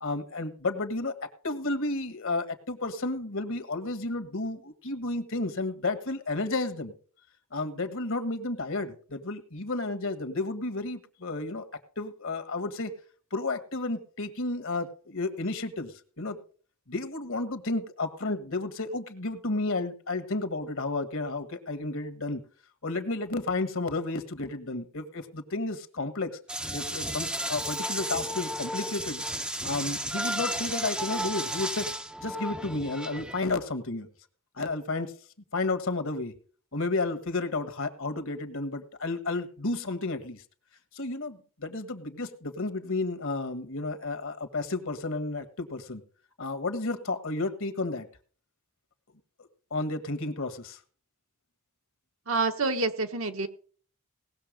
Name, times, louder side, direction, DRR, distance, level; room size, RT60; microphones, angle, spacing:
voice 1, 0.0-6.9 7.5-12.9 13.3-16.4 16.9-22.4 22.8-26.4 26.7-29.2 29.6-31.9 32.2-34.1 34.6-35.1 35.5-36.3 36.7-40.4 40.9-46.0 46.4-48.1 49.7-50.8, left 2 dB, 60° left, 8 dB, 1.6 m, -32 dB
sound 1, 26.5-33.4, right 1 dB, 5° right, 0.7 m, -33 dB
voice 2, 52.3-53.5, right 3 dB, 65° right, 6 dB, 1.4 m, -27 dB
18.5 x 6.8 x 5.2 m, 0.43 s
head